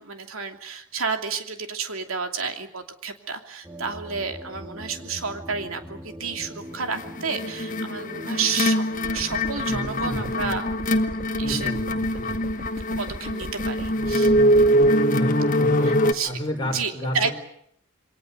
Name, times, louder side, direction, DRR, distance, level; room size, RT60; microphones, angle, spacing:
voice 1, 0.0-10.7 11.4-11.7 13.0-14.3 15.8-16.4 16.6-17.3, right 5 dB, 65° right, 5 dB, 2.8 m, -30 dB
sound 1, 3.6-9.5, equal, 15° right, 2.2 m, -42 dB
sound 2, 7.0-16.1, equal, 40° left, 1.3 m, -23 dB
sound 3, 8.9-14.9, right 1 dB, 45° right, 2.1 m, -36 dB
voice 2, 9.7-10.5 11.4-12.4 15.1-17.3, equal, 20° left, 2 dB, 4.5 m, -32 dB
28.0 x 23.0 x 6.9 m, 0.70 s
head